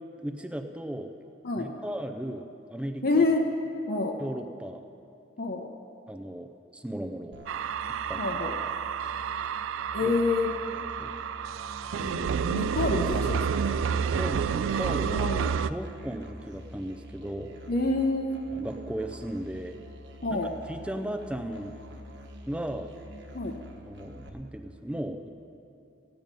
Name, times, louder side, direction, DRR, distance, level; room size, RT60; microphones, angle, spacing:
voice 1, 0.2-1.1 1.6-3.2 4.2-4.8 6.1-7.4 8.1-8.2 10.0-10.1 11.0-11.1 14.0-15.3 15.6-17.5 18.5-19.8 20.3-20.4 20.7-21.8 22.5-22.9 23.8-25.3, right 1 dB, 5° right, 6 dB, 0.5 m, -36 dB
voice 2, 3.0-3.4 3.9-4.2 5.4-5.7 8.2-8.5 9.9-10.5 12.0-13.8 15.0-15.5 17.7-18.4 20.2-20.5 23.3-23.5, left 3 dB, 50° left, 1 dB, 0.8 m, -27 dB
Musical instrument, 7.3-24.3, equal, 60° right, 1.2 m, -47 dB
sound 1, 7.5-15.7, right 7 dB, 80° right, 0.3 m, -30 dB
16.5 x 9.0 x 5.3 m, 2.6 s
head